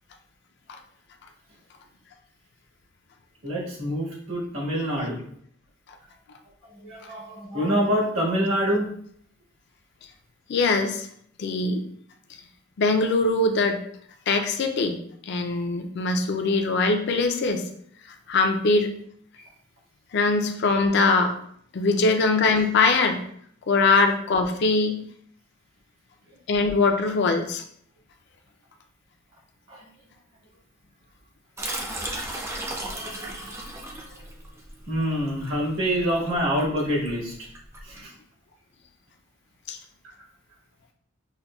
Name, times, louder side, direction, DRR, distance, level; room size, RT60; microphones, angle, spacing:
voice 1, 3.4-5.2 6.8-8.9 19.4-19.5 29.7-29.9 32.5-32.6 32.9-33.3 34.1-34.2 34.9-37.3 37.8-38.1, equal, 85° right, -4 dB, 1.4 m, -26 dB
voice 2, 10.5-11.1 11.4-11.8 12.8-13.8 14.3-15.0 15.3-17.6 18.3-18.9 20.1-21.3 21.7-23.2 23.7-25.0 26.5-27.6 39.7-39.8, left 3 dB, 55° left, 6 dB, 0.4 m, -22 dB
sound 1, 31.6-38.0, right 1 dB, 15° right, 0.4 m, -35 dB
5.5 x 2.2 x 2.2 m, 0.65 s
head